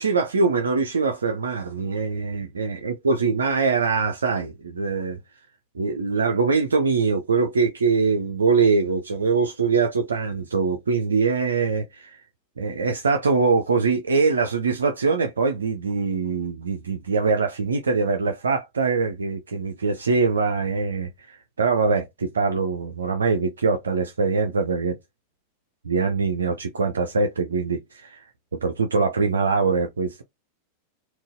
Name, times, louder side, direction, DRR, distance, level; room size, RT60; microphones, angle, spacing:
voice 1, 0.0-5.2 5.7-12.2 12.6-25.0 25.8-28.3 28.5-30.2, right 4 dB, 70° right, 0.4 m, -23 dB
3.7 x 2.3 x 2.5 m
figure-of-eight pair, 90°, 0 cm